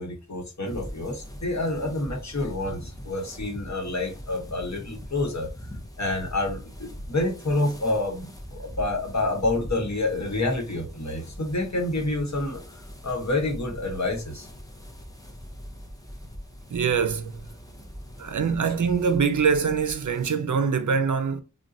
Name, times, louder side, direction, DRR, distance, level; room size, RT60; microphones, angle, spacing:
voice 1, 0.0-5.5 6.0-12.6 13.0-14.5, left 2 dB, 60° left, 1.0 m, -28 dB
sound 1, 0.6-20.3, equal, 10° left, 0.6 m, -42 dB
voice 2, 16.7-17.3 18.2-21.4, right 6 dB, 70° right, 0.5 m, -24 dB
2.4 x 2.2 x 4.0 m
wide cardioid pair, 60°, 32 cm